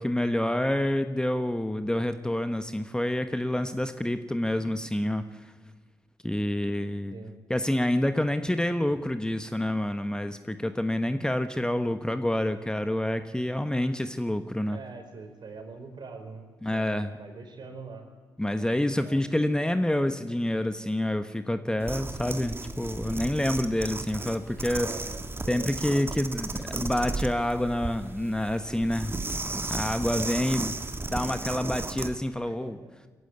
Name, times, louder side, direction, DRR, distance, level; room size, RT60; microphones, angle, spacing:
voice 1, 0.0-5.4 6.2-7.1 7.5-14.8 16.6-17.1 18.4-24.9 25.5-29.1 29.5-30.7 31.1-32.8, left 1 dB, 10° left, 9 dB, 1.2 m, -28 dB
voice 2, 14.7-16.4 16.7-18.1 19.0-19.2 24.8-25.7 30.1-30.4 32.4-32.9, right 4 dB, 55° right, 5 dB, 4.3 m, -43 dB
sound 1, 21.8-32.2, right 2 dB, 25° right, 1.6 m, -35 dB
22.0 x 15.0 x 9.5 m, 1.4 s
hypercardioid pair, 45°, 9 cm